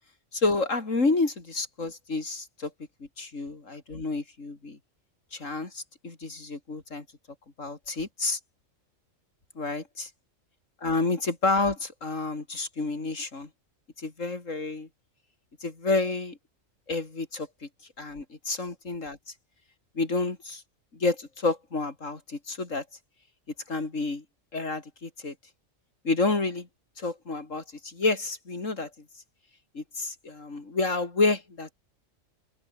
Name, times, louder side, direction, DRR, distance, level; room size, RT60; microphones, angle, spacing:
voice 1, 0.3-2.7 3.2-4.8 5.3-7.0 7.6-8.4 9.6-10.1 10.8-13.5 14.0-14.9 15.6-16.4 16.9-17.7 18.0-19.2 20.0-20.6 20.9-22.8 23.7-24.2 24.5-25.3 26.0-26.7 27.0-28.9 29.7-31.7, left 3 dB, 70° left, 3.8 m, -29 dB
open air
omnidirectional pair, 1.4 m